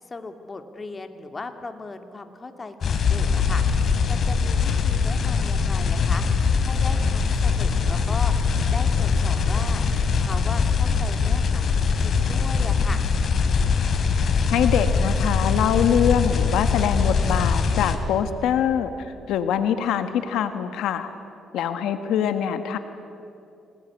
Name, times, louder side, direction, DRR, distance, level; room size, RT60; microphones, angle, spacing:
voice 1, 0.0-3.6 4.1-8.3 8.7-9.8 10.2-13.0, left 3 dB, 30° left, 6 dB, 2.4 m, -37 dB
sound 1, 2.8-18.0, left 5 dB, 55° left, 2.9 m, -22 dB
voice 2, 14.5-21.1 21.5-22.8, left 8 dB, 85° left, 9 dB, 1.4 m, -24 dB
26.5 x 19.0 x 9.7 m, 2.7 s
cardioid pair, 90°, 0 cm